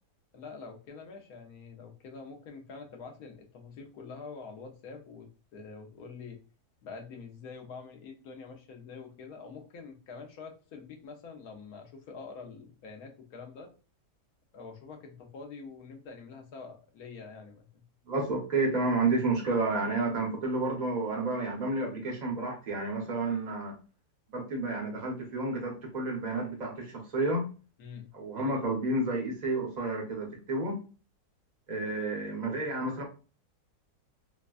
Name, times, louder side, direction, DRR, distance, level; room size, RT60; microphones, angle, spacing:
voice 1, 0.3-6.4 6.8-13.7 14.5-17.9 27.8-28.1, left 4 dB, 65° left, 1.2 m, -46 dB
voice 2, 18.1-23.8 24.3-27.5 28.1-30.8 31.7-33.0, right 2 dB, 35° right, 0.8 m, -30 dB
4.2 x 2.2 x 2.4 m
omnidirectional pair, 1.9 m